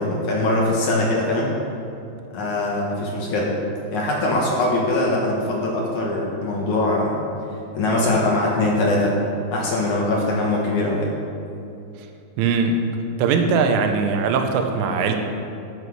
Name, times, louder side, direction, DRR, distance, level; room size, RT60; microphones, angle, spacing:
voice 1, 0.0-1.5 2.3-3.5 3.9-7.2 7.7-9.1 9.5-11.1, left 2 dB, 65° left, -3 dB, 1.9 m, -22 dB
voice 2, 12.4-12.8 13.2-15.2, right 5 dB, 85° right, 5 dB, 3.4 m, -20 dB
11.0 x 8.3 x 6.3 m, 2.7 s
omnidirectional pair, 5.5 m